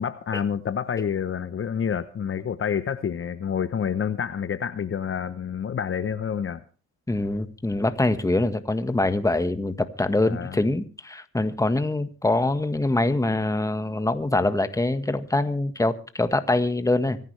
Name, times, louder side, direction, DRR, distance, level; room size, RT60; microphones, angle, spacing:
voice 1, 0.0-6.6 10.3-10.6, left 7 dB, 45° left, 11 dB, 1.0 m, -28 dB
voice 2, 7.1-17.2, left 2 dB, 10° left, 10 dB, 1.6 m, -24 dB
25.5 x 11.0 x 3.3 m, 0.38 s
cardioid pair, 90°, 30 cm